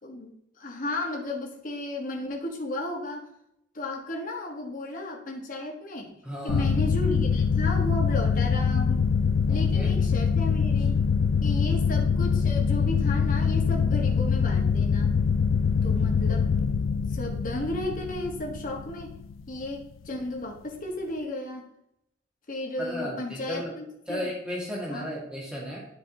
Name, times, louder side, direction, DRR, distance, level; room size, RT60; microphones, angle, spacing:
voice 1, 0.0-3.3 3.7-6.2 6.4-9.1 9.5-10.9 11.4-15.1 15.8-16.5 17.1-19.1 19.5-21.7 22.5-24.3 24.9-25.1, left 1 dB, 45° left, 0 dB, 1.4 m, -34 dB
voice 2, 6.2-6.7 9.5-9.9 22.8-23.7 24.1-25.9, equal, 5° right, -5 dB, 2.1 m, -34 dB
sound 1, 6.5-19.7, left 5 dB, 85° left, 0.3 m, -24 dB
10.0 x 4.8 x 2.9 m, 0.80 s
head